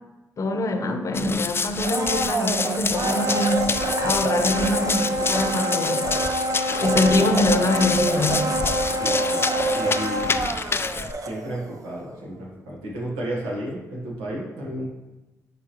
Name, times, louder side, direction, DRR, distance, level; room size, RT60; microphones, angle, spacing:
voice 1, 0.4-3.7 4.0-6.0 6.8-8.5, left 2 dB, 50° left, 6 dB, 0.8 m, -24 dB
Run, 1.1-11.1, left 4 dB, 35° left, 0.4 m, -28 dB
Domestic sounds home sounds, 1.8-11.7 12.0-12.1, right 1 dB, 55° right, 0.6 m, -26 dB
voice 2, 6.8-7.3 9.0-10.6 11.2-14.8, right 1 dB, 90° right, -3 dB, 1.4 m, -33 dB
9.5 x 3.5 x 3.0 m, 1.1 s
hypercardioid pair, 45°, 7 cm